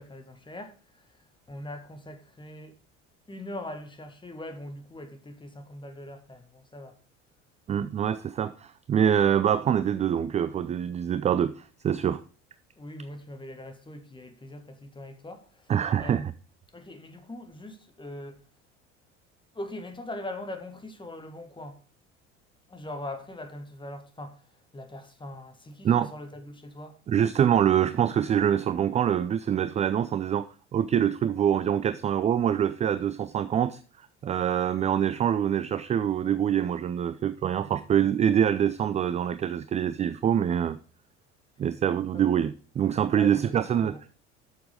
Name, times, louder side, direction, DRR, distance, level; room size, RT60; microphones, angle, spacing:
voice 1, 0.0-2.7 3.3-7.0 12.8-16.3 16.7-18.4 19.5-21.8 22.7-27.0 42.1-42.2 43.2-44.0, left 1 dB, 10° left, 1.7 m, -41 dB
voice 2, 7.7-12.2 15.7-16.3 25.8-26.1 27.1-30.5 30.7-33.8 34.2-40.8 41.6-43.9, right 9 dB, 20° right, 0.4 m, -25 dB
7.9 x 6.9 x 5.1 m
figure-of-eight pair, 65°, 38 cm